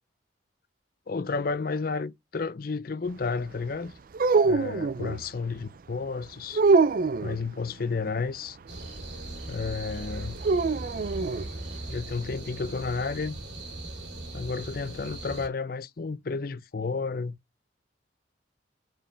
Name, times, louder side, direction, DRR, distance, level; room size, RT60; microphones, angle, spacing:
voice 1, 1.1-3.9 4.4-6.6 7.2-8.6 9.5-10.4 11.9-13.4 14.3-17.4, left 4 dB, 50° left, 0.5 m, -32 dB
sound 1, 4.1-5.2 6.5-7.4 10.4-11.5, right 4 dB, 50° right, 0.4 m, -23 dB
Night crickets Loopable, 8.7-15.5, right 2 dB, 65° right, 2.6 m, -39 dB
5.0 x 4.6 x 5.6 m
head